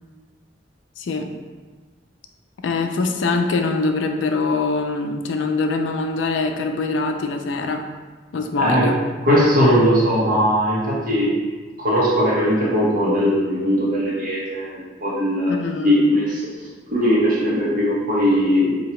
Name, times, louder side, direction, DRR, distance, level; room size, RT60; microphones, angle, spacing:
voice 1, 1.0-1.3 2.6-7.9 8.3-9.0 15.5-16.1, left 3 dB, 80° left, 5 dB, 0.4 m, -23 dB
voice 2, 8.5-8.9 9.2-11.4 11.8-16.5 16.9-18.9, equal, 50° right, -6 dB, 1.0 m, -19 dB
2.9 x 2.8 x 4.3 m, 1.4 s
head